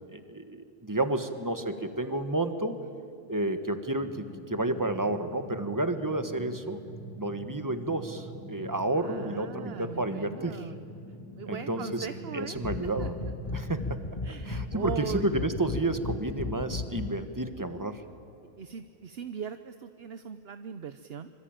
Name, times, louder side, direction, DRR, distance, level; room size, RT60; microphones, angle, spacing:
voice 1, 0.1-2.8 3.3-6.8 7.2-10.7 11.5-12.1 12.3-13.9 14.5-18.0, right 2 dB, 20° right, 8 dB, 1.5 m, -31 dB
sound 1, 4.0-17.2, right 1 dB, 15° left, 6.1 m, -45 dB
voice 2, 9.0-10.8 11.4-12.6 13.0-13.1 14.2-15.4 18.6-21.3, right 7 dB, 70° right, 9 dB, 1.0 m, -39 dB
sound 2, 12.5-17.2, left 3 dB, 30° left, 1.2 m, -35 dB
25.5 x 25.0 x 9.1 m, 2.7 s
omnidirectional pair, 1.1 m